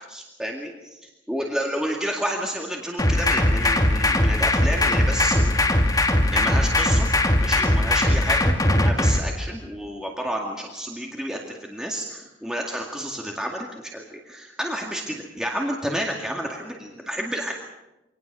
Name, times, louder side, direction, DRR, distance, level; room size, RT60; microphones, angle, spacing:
voice 1, 0.1-1.0 1.3-5.6 6.3-7.1 7.4-17.5, equal, 5° right, 0 dB, 2.1 m, -30 dB
sound 1, 3.0-9.2, left 1 dB, 20° left, 2.2 m, -20 dB
25.5 x 18.5 x 6.8 m, 0.97 s
head